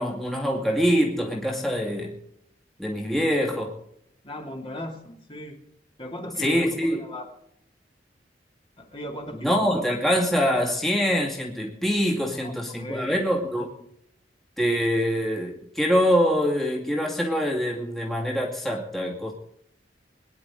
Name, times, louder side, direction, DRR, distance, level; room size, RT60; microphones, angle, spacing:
voice 1, 0.0-2.2 2.8-3.7 6.4-7.0 9.4-13.7 14.6-19.3, equal, ahead, -2 dB, 2.3 m, -24 dB
voice 2, 4.2-5.6 6.0-7.3 8.8-9.8 12.4-13.2, left 1 dB, 30° left, 1 dB, 2.8 m, -37 dB
22.5 x 10.5 x 3.8 m, 0.73 s
head